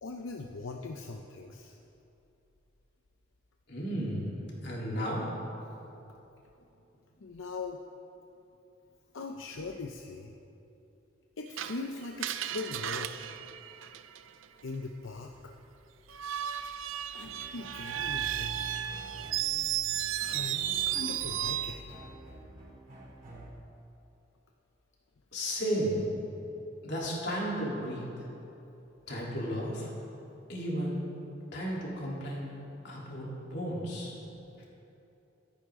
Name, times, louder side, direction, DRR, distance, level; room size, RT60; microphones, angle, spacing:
voice 1, 0.0-1.8 7.2-7.8 9.1-10.4 11.4-13.1 14.6-15.5 17.1-18.6 20.2-22.0, left 3 dB, 90° left, 2 dB, 0.7 m, -40 dB
voice 2, 3.7-4.3 4.6-5.3 25.3-26.0 26.8-28.1 29.1-29.9 30.5-31.1 31.5-32.6 32.8-34.1, equal, 60° left, -5 dB, 3.5 m, -33 dB
Screech, 11.6-14.4 16.1-21.8, right 11 dB, 90° right, 0.5 m, -34 dB
sound 1, 17.2-23.5, right 1 dB, 45° right, 3.1 m, -47 dB
24.0 x 10.0 x 3.8 m, 2.9 s
head